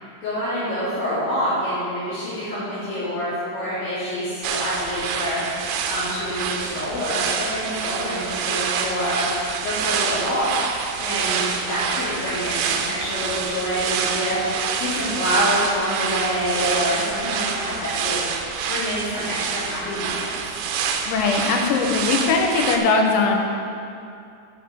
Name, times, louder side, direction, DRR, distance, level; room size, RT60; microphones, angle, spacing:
voice 1, 0.2-14.4 14.7-20.3, equal, 65° left, -15 dB, 5.2 m, -26 dB
sound 1, 4.4-22.8, right 6 dB, 80° right, 2.8 m, -27 dB
voice 2, 21.1-23.4, left 4 dB, 85° left, 1 dB, 3.7 m, -20 dB
9.0 x 6.3 x 7.5 m, 2.5 s
omnidirectional pair, 6.0 m